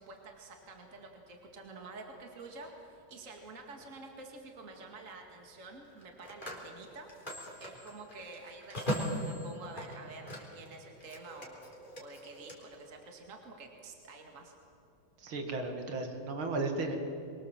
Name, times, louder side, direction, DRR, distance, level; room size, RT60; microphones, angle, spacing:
voice 1, 0.0-7.1 7.6-14.5, right 3 dB, 40° right, 2 dB, 2.4 m, -49 dB
Telephone, 3.7-3.9 5.8-10.7 11.0-12.6, equal, 25° left, 3.9 m, -40 dB
voice 2, 15.2-17.0, right 3 dB, 80° right, 4 dB, 2.9 m, -35 dB
25.0 x 22.5 x 7.5 m, 2.7 s
omnidirectional pair, 2.2 m